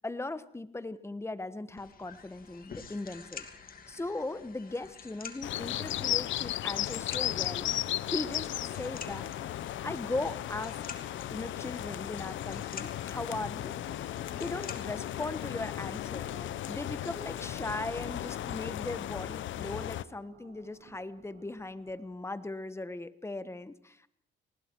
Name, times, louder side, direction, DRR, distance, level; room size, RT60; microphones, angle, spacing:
voice 1, 0.0-3.5 3.9-7.7 8.1-8.5 8.8-9.3 9.8-10.8 11.3-13.8 14.3-16.3 16.6-24.1, left 2 dB, 15° left, 13 dB, 1.3 m, -38 dB
sound 1, 1.8-16.0, left 6 dB, 45° left, 2.7 m, -49 dB
sound 2, 5.4-20.0, left 13 dB, 75° left, 0.8 m, -35 dB
sound 3, 7.3-22.1, right 7 dB, 55° right, 1.7 m, -58 dB
29.0 x 20.0 x 4.7 m, 0.68 s
cardioid pair, 90°, 20 cm